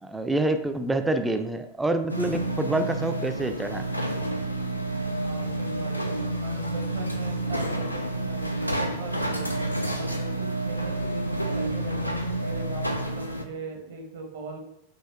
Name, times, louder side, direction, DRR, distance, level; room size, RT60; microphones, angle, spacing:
voice 1, 0.0-3.8, right 2 dB, 10° right, 6 dB, 0.3 m, -27 dB
sound 1, 2.1-13.4, right 1 dB, 85° left, 0.3 m, -29 dB
voice 2, 5.1-9.5 9.9-14.6, right 3 dB, 60° right, 3 dB, 0.7 m, -40 dB
5.4 x 2.7 x 2.2 m, 0.77 s
figure-of-eight pair, 90°, 0 cm